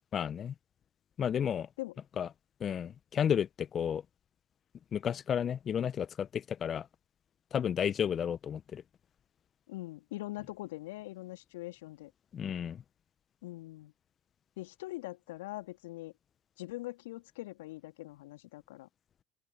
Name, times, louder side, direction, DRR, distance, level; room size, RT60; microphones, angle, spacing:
voice 1, 0.1-0.5 1.2-1.7 2.2-2.3 2.6-4.0 4.9-6.9 7.5-8.8 12.3-12.8, left 8 dB, 40° left, 1.3 m, -32 dB
voice 2, 9.7-12.1 13.4-13.9 14.6-16.1 16.6-18.9, left 18 dB, 70° left, 3.2 m, -42 dB
open air
figure-of-eight pair, 65°, 0 cm